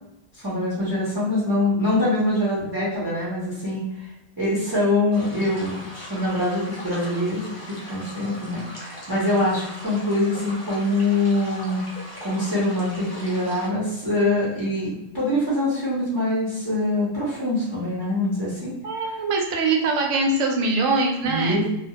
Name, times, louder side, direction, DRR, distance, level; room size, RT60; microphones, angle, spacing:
voice 1, 0.3-4.1 4.4-7.4 7.7-11.8 12.2-18.7 21.2-21.7, left 1 dB, 25° right, -9 dB, 0.6 m, -24 dB
sound 1, 5.1-13.7, left 1 dB, 40° left, 0.5 m, -40 dB
voice 2, 18.8-21.7, right 3 dB, 90° right, 1 dB, 1.0 m, -23 dB
2.2 x 2.1 x 2.8 m, 0.91 s
omnidirectional pair, 1.3 m